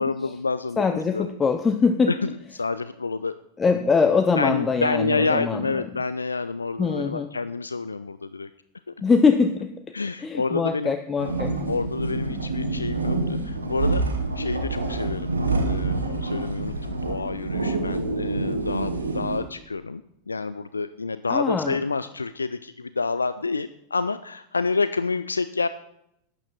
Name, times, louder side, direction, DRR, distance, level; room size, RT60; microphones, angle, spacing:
voice 1, 0.0-1.3 2.1-3.3 4.3-8.5 8.9-9.0 9.9-10.9 11.7-14.0 14.4-15.4 15.6-20.0 20.3-25.7, left 4 dB, 75° left, 13 dB, 0.3 m, -28 dB
voice 2, 0.8-2.1 3.6-5.8 6.8-7.3 9.0-9.8 10.2-11.6 21.3-21.8, left 5 dB, 15° left, 8 dB, 0.6 m, -22 dB
sound 1, 11.2-19.4, right 3 dB, 75° right, 1.3 m, -27 dB
11.5 x 8.9 x 4.1 m, 0.77 s
figure-of-eight pair, 90°, 0 cm